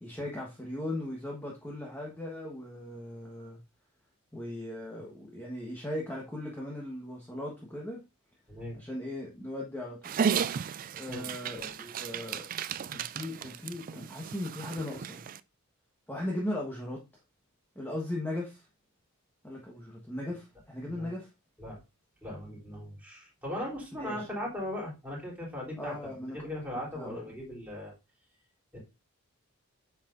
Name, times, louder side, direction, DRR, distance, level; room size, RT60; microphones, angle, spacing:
voice 1, 0.0-3.6 4.3-8.0 8.7-10.0 10.9-12.5 12.8-15.3 16.1-17.0 17.7-18.7 19.4-21.3 24.0-24.3 25.8-26.5 26.9-27.2, left 1 dB, 10° left, 1.3 m, -38 dB
Dog, 10.0-15.4, right 7 dB, 40° right, 0.3 m, -34 dB
voice 2, 11.1-11.8 20.9-21.1 21.6-21.8 22.2-27.9 28.7-28.8, left 1 dB, 5° right, 3.5 m, -39 dB
8.5 x 5.9 x 2.6 m
head